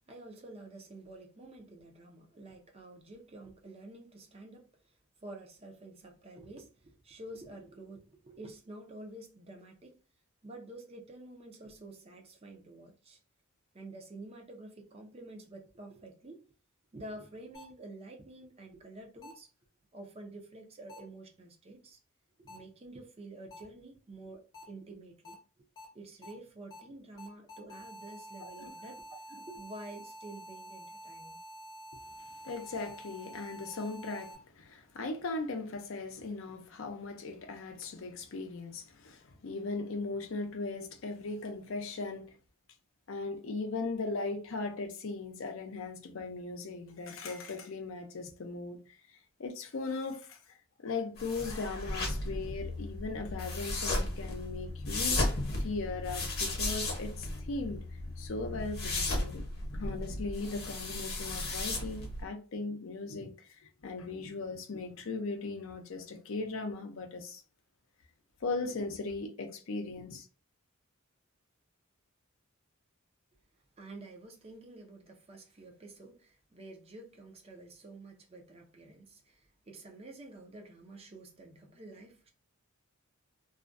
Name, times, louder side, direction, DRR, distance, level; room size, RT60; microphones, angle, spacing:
voice 1, 0.1-4.9 5.2-10.0 10.4-13.2 13.7-16.4 16.9-19.5 19.9-22.0 22.4-25.6 25.9-31.4 73.8-82.3, right 2 dB, 30° right, 0.5 m, -49 dB
sound 1, 17.5-17.6 19.2-19.3 20.9-21.0 22.5-22.6 23.5-23.6 24.5-24.6 25.2-25.3 25.8-25.9 26.2-26.3 26.7-26.8 27.2-34.4, right 1 dB, 20° left, 0.7 m, -48 dB
voice 2, 32.4-42.3 43.1-48.8 49.4-50.4 50.8-57.8 58.2-59.4 59.7-67.4 68.4-70.3, left 3 dB, 65° left, 0.5 m, -38 dB
Finger Dragged Across winter Jacket, 51.2-62.2, left 2 dB, 45° left, 0.9 m, -35 dB
2.4 x 2.2 x 2.5 m
head